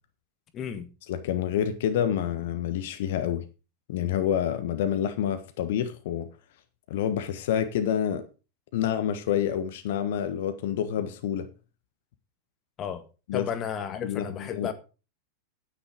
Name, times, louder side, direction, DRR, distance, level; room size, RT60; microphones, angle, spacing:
voice 1, 0.5-0.9 12.8-13.0 13.3-14.7, left 8 dB, 30° left, 1.7 m, -33 dB
voice 2, 1.1-3.4 3.9-6.3 6.9-8.2 8.7-11.5 13.3-13.5 14.0-14.7, left 9 dB, 55° left, 1.4 m, -28 dB
10.0 x 9.9 x 5.2 m
figure-of-eight pair, 90°, 0 cm